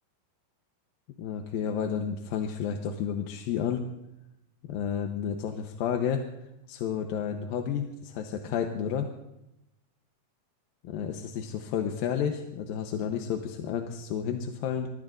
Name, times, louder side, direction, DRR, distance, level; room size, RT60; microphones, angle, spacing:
voice 1, 1.2-3.9 4.6-6.2 6.7-9.1 10.8-14.9, left 8 dB, 80° left, 4 dB, 2.7 m, -31 dB
24.5 x 21.5 x 2.6 m, 0.89 s
omnidirectional pair, 4.2 m